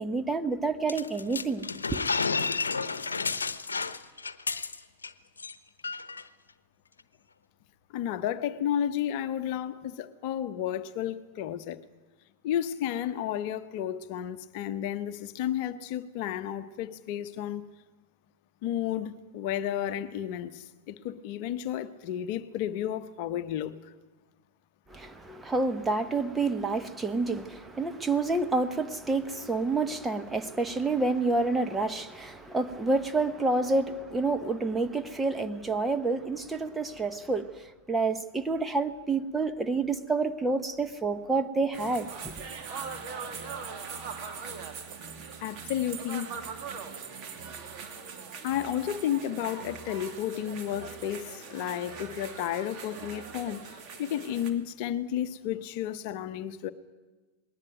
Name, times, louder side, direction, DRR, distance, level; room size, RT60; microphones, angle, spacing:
voice 1, 0.0-2.0 24.9-42.3, right 3 dB, 10° right, 1.1 m, -29 dB
sound 1, 0.9-5.1 5.4-5.5 5.8-6.2, left 4 dB, 75° left, 1.0 m, -31 dB
voice 2, 7.9-11.8 12.4-17.6 18.6-23.9 45.4-46.3 48.4-56.7, left 10 dB, 45° left, 0.9 m, -32 dB
sound 2, 41.7-54.5, right 5 dB, 35° right, 2.6 m, -41 dB
20.0 x 18.5 x 9.2 m
figure-of-eight pair, 90°, 0 cm